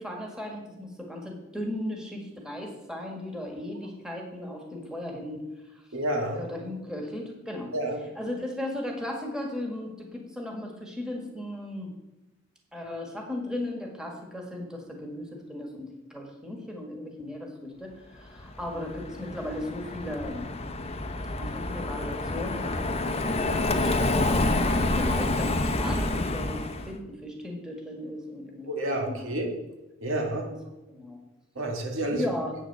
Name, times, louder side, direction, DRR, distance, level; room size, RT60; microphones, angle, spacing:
voice 1, 0.0-5.4 6.3-7.7 8.2-11.9 12.7-20.4 21.4-26.6 26.9-29.6 30.4-30.6 30.9-31.2 32.1-32.6, left 1 dB, 5° right, 0 dB, 1.8 m, -36 dB
voice 2, 5.9-6.4 7.7-8.0 28.7-29.5 30.0-30.5 31.6-32.2, right 1 dB, 80° right, 2 dB, 1.8 m, -29 dB
Car passing by, 18.4-26.9, left 2 dB, 30° left, 0.7 m, -28 dB
8.5 x 6.4 x 6.8 m, 1.0 s
head